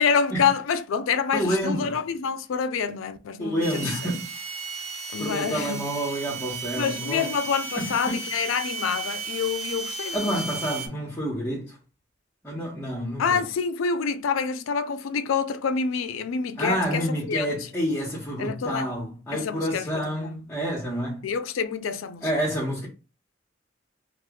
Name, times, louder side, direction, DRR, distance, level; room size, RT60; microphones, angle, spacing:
voice 1, 0.0-4.1 5.1-5.8 6.8-10.3 13.2-17.5 18.4-18.9 19.3-20.3 21.2-22.2, left 6 dB, 85° left, 0.4 m, -27 dB
voice 2, 1.3-2.0 3.4-4.3 5.2-7.3 7.8-8.1 10.1-11.8 12.4-13.4 16.6-21.3 22.2-22.9, equal, 10° left, 0.9 m, -28 dB
sound 1, 3.6-10.9, right 4 dB, 30° right, 0.5 m, -34 dB
2.9 x 2.3 x 3.5 m
head